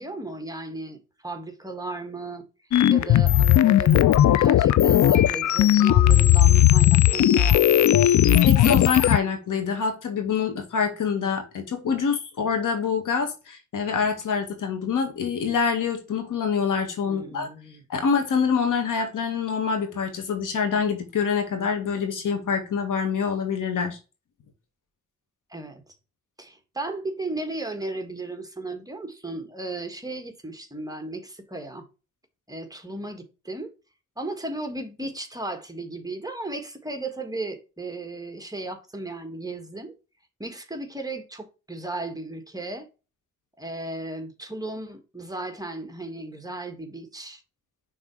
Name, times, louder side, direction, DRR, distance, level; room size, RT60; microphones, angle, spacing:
voice 1, 0.0-2.5 2.9-7.6 17.0-17.8 25.5-25.8 26.4-31.8 32.5-33.7 34.2-39.9 40.4-42.9 43.6-47.4, right 2 dB, 10° right, 1.5 m, -35 dB
sound 1, 2.7-9.2, left 12 dB, 65° left, 0.5 m, -17 dB
voice 2, 8.2-17.5 17.9-24.0, left 6 dB, 80° left, 1.8 m, -26 dB
6.2 x 3.6 x 4.7 m
cardioid pair, 80°, 31 cm